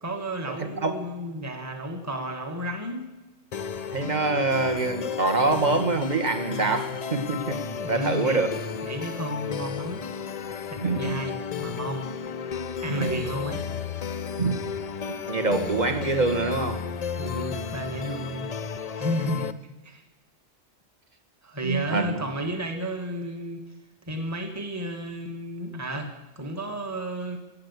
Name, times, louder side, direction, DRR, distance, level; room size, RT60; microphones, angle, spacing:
voice 1, 0.0-3.1 7.8-8.4 8.8-10.0 10.7-12.1 12.8-13.6 17.2-18.5 19.0-19.5 19.8-20.0 21.4-23.6 24.0-27.4, equal, 15° right, 4 dB, 1.4 m, -32 dB
sound 1, 3.5-19.5, left 6 dB, 45° left, 0.5 m, -33 dB
voice 2, 3.9-7.6 7.9-8.5 10.8-11.2 12.9-13.2 14.4-14.5 15.3-16.8 21.6-22.2, right 3 dB, 40° right, 6 dB, 1.5 m, -25 dB
16.5 x 8.4 x 8.1 m, 1.1 s
omnidirectional pair, 1.2 m